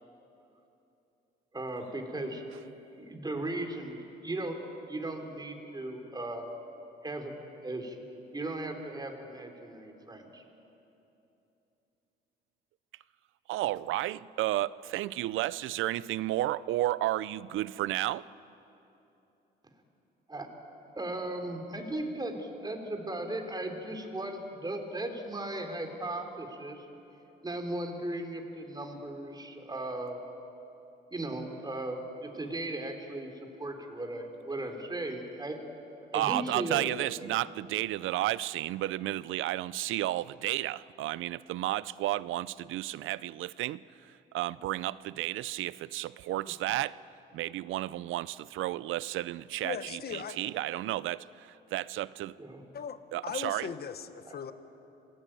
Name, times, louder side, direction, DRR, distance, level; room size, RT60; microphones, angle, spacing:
voice 1, 1.5-2.5 2.9-4.0 4.2-4.6 4.9-6.5 7.0-7.3 7.6-8.1 8.3-10.4 20.3-20.5 21.0-26.9 27.4-30.2 31.1-33.3 33.6-35.6 36.1-36.9 37.2-37.3 52.4-52.6 54.3-54.4, right 1 dB, 20° right, 4 dB, 3.7 m, -37 dB
voice 2, 13.5-18.3 36.1-43.8 44.3-47.0 47.3-52.3 53.1-53.7, right 15 dB, 85° right, 19 dB, 0.5 m, -32 dB
voice 3, 49.6-50.4 52.7-53.0 53.2-54.5, left 7 dB, 50° left, 10 dB, 1.4 m, -38 dB
26.5 x 19.0 x 9.1 m, 2.9 s
cardioid pair, 90°, 20 cm